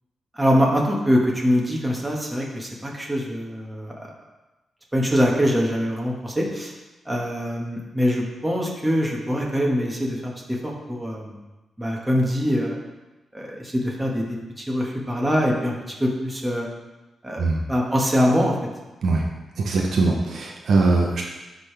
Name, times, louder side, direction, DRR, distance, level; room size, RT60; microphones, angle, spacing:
voice 1, 0.3-4.1 4.9-6.7 7.1-11.3 11.8-12.8 13.3-15.7 16.0-16.7 17.2-18.6, equal, 10° right, -2 dB, 1.7 m, -23 dB
voice 2, 19.6-21.2, right 3 dB, 70° right, 0 dB, 0.9 m, -21 dB
12.0 x 4.0 x 3.5 m, 1.1 s
cardioid pair, 85°, 0 cm